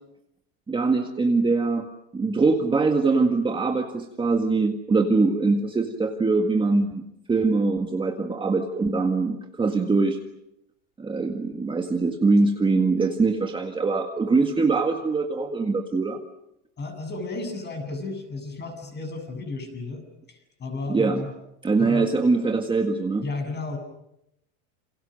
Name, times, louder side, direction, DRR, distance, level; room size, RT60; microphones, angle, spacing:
voice 1, 0.7-1.9 2.1-7.0 7.3-10.2 11.0-16.2 20.9-21.3 21.6-23.2, right 3 dB, 10° right, 4 dB, 1.8 m, -23 dB
voice 2, 16.8-20.0 20.3-21.3 21.8-22.1 23.2-23.8, left 3 dB, 25° left, 6 dB, 7.8 m, -33 dB
29.0 x 27.5 x 6.5 m, 0.81 s
supercardioid pair, 135°, 39 cm